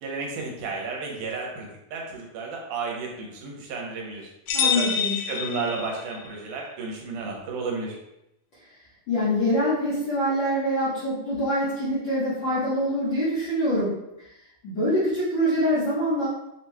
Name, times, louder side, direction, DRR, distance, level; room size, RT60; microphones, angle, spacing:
voice 1, 0.0-4.3 4.6-4.9 5.3-8.0, right 4 dB, 80° right, -1 dB, 2.3 m, -32 dB
sound 1, 4.5-6.3, left 7 dB, 85° left, 1.5 m, -27 dB
voice 2, 4.5-5.2 9.1-14.3 14.6-16.3, equal, 70° left, -10 dB, 1.1 m, -25 dB
5.8 x 3.0 x 2.2 m, 0.87 s
omnidirectional pair, 3.6 m